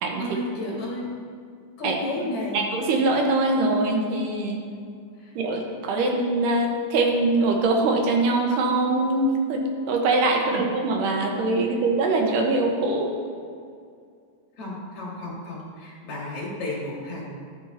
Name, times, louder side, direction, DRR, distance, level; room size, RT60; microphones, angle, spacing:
voice 1, 0.2-1.1 1.8-2.6 5.2-5.3 10.5-10.7 14.6-17.3, left 2 dB, 45° left, -6 dB, 3.3 m, -33 dB
voice 2, 1.8-2.3 2.5-4.6 5.4-13.1, right 2 dB, 80° right, 1 dB, 2.6 m, -23 dB
12.0 x 8.5 x 2.7 m, 2.3 s
omnidirectional pair, 3.7 m